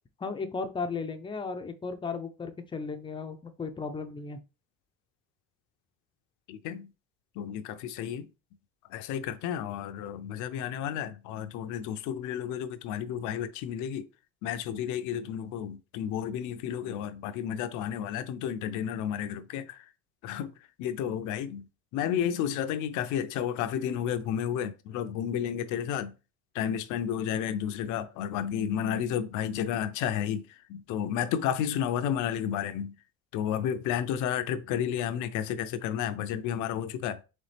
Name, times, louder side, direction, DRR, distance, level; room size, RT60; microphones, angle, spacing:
voice 1, 0.2-4.4, left 4 dB, 15° left, 0.5 m, -35 dB
voice 2, 6.5-6.9 7.4-8.3 8.9-14.1 14.4-19.8 20.2-21.7 21.9-26.1 26.5-30.4 30.7-32.9 33.3-37.2, left 9 dB, 70° left, 0.6 m, -32 dB
4.2 x 3.4 x 3.3 m
cardioid pair, 125°, 31 cm